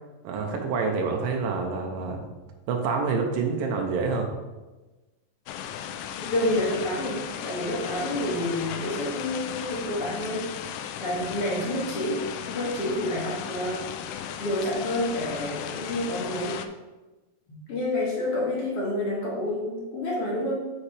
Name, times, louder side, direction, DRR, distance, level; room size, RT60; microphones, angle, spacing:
voice 1, 0.2-2.2 2.7-4.3, right 4 dB, 90° right, 2 dB, 2.5 m, -27 dB
sound 1, 5.5-16.7, left 9 dB, 85° left, 2.2 m, -36 dB
voice 2, 6.2-10.5 11.0-13.9 14.4-16.6 17.7-20.7, left 1 dB, 50° left, -4 dB, 2.0 m, -29 dB
8.3 x 5.7 x 3.3 m, 1.1 s
omnidirectional pair, 3.9 m